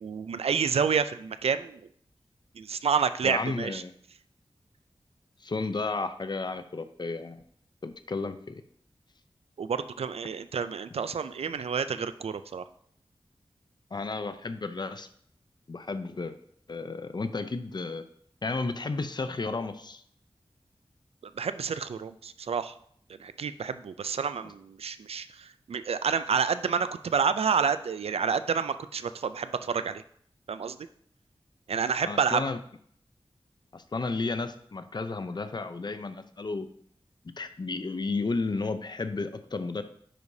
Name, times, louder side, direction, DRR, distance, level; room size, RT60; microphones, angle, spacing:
voice 1, 0.0-1.8 2.6-3.8 9.6-12.6 21.4-22.7 23.2-30.0 30.5-30.8 31.7-32.4, right 6 dB, 85° right, 12 dB, 0.4 m, -29 dB
voice 2, 3.2-3.9 5.4-7.4 7.8-8.6 13.9-15.1 15.7-16.4 16.7-18.1 18.4-20.0 32.0-32.6 33.7-36.7 37.2-39.8, left 3 dB, 45° left, 10 dB, 0.6 m, -33 dB
10.0 x 4.8 x 2.7 m, 0.63 s
wide cardioid pair, 70°, 10 cm